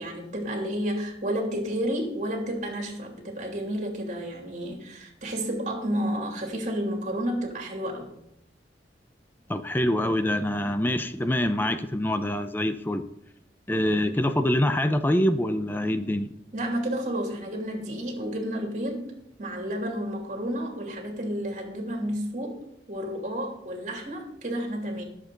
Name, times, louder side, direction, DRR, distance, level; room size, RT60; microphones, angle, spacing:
voice 1, 0.0-8.1 16.5-19.1 19.4-22.6 22.9-25.0, equal, 45° right, 1 dB, 3.1 m, -31 dB
voice 2, 9.5-13.1 13.7-16.3, left 1 dB, 10° left, 9 dB, 0.6 m, -25 dB
20.0 x 7.6 x 4.0 m, 0.78 s
head